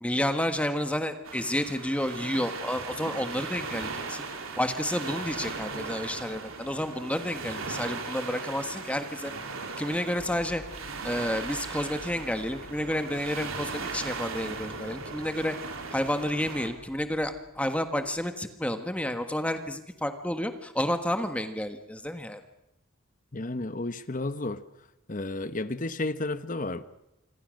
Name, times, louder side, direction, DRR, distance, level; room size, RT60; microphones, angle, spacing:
voice 1, 0.0-4.2 4.6-9.3 9.8-10.6 11.0-15.5 15.9-22.4, left 1 dB, 5° left, 1.5 m, -30 dB
sound 1, 1.2-16.7, right 4 dB, 80° right, 3.3 m, -38 dB
sound 2, 10.2-18.3, left 1 dB, 90° left, 4.2 m, -51 dB
voice 2, 23.3-24.6 25.1-26.8, left 2 dB, 40° left, 1.0 m, -32 dB
26.5 x 25.0 x 6.5 m
head